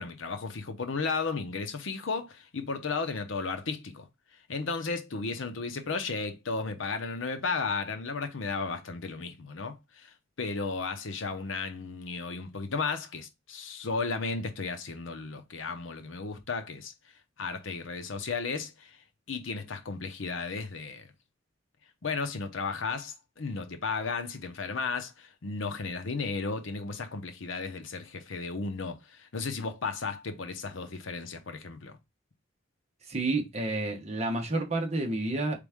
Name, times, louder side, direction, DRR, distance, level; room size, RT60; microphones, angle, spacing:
voice 1, 0.0-4.1 4.5-16.9 17.4-19.0 19.3-21.1 22.0-32.0, left 4 dB, 75° left, 0.8 m, -34 dB
voice 2, 33.1-35.6, right 2 dB, 35° right, 1.0 m, -30 dB
4.1 x 3.4 x 3.5 m
head